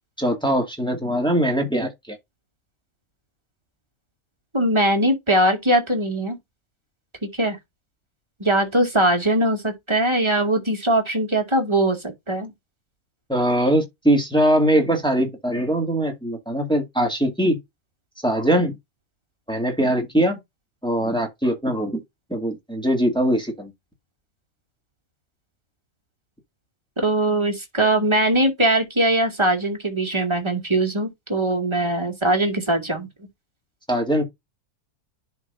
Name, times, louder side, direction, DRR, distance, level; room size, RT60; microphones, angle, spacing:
voice 1, 0.2-2.2 13.3-17.6 18.2-18.7 19.5-20.4 20.8-22.0 22.3-23.7 33.9-34.2, right 1 dB, 5° left, 2.0 m, -21 dB
voice 2, 4.5-6.4 7.2-7.6 8.4-12.5 27.0-33.1, right 1 dB, 20° right, 2.1 m, -21 dB
11.0 x 4.4 x 2.6 m
omnidirectional pair, 1.6 m